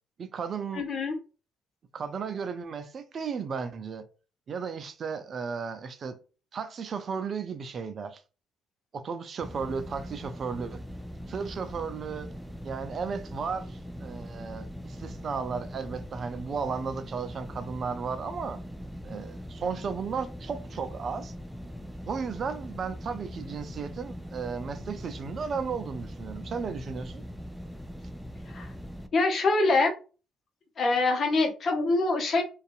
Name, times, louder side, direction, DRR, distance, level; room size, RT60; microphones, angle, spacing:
voice 1, 0.2-0.9 1.9-4.1 4.5-6.2 6.5-8.2 8.9-10.8 11.3-12.3 12.6-18.6 19.0-21.3 22.1-27.2, right 5 dB, 50° right, 0.5 m, -34 dB
voice 2, 0.7-1.2 28.5-28.7 29.1-29.9 30.8-32.4, left 3 dB, 50° left, 0.8 m, -24 dB
sound 1, 9.4-29.1, equal, ahead, 0.4 m, -41 dB
2.6 x 2.3 x 2.5 m
hypercardioid pair, 55°, 0 cm